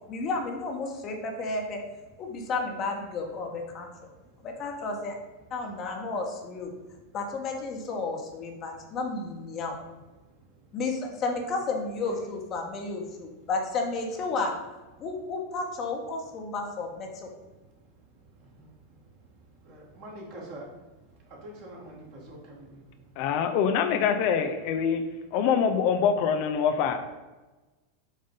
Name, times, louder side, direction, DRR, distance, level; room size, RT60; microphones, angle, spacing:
voice 1, 0.1-1.8 2.2-4.1 4.4-5.2 5.5-6.7 7.1-9.8 10.7-14.5 15.0-17.3, left 3 dB, 40° left, 2 dB, 1.2 m, -32 dB
voice 2, 19.7-20.6 21.4-22.7, right 1 dB, 50° right, -2 dB, 2.1 m, -44 dB
voice 3, 23.2-25.0 25.3-27.1, left 7 dB, 55° left, 8 dB, 0.6 m, -24 dB
7.5 x 2.6 x 5.2 m, 1.2 s
hypercardioid pair, 100°, 0 cm